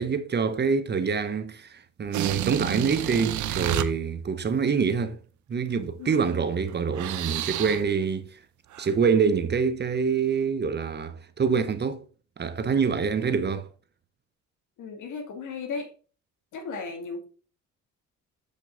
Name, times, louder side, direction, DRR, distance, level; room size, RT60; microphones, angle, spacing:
voice 1, 0.0-5.2 5.5-8.4 8.8-12.0 12.4-13.7, right 5 dB, 35° right, 0.8 m, -26 dB
sound 1, 2.1-3.9 6.1-6.3 6.7-7.9 8.7-8.9, right 12 dB, 75° right, 0.6 m, -30 dB
voice 2, 14.8-15.9 16.5-17.3, left 4 dB, 80° left, 1.8 m, -35 dB
7.4 x 5.3 x 3.8 m
cardioid pair, 90°, 30 cm